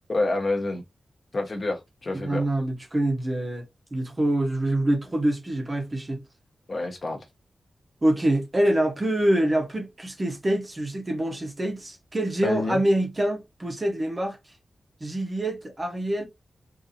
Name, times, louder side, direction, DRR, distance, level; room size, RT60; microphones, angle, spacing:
voice 1, 0.1-0.8 1.3-2.4 6.7-7.2 12.4-12.8, left 2 dB, 35° left, 0.8 m, -27 dB
voice 2, 2.1-3.6 3.9-6.2 8.0-14.4 15.0-16.2, right 1 dB, 20° right, 0.7 m, -25 dB
3.9 x 2.5 x 2.6 m
wide cardioid pair, 175°, 0 cm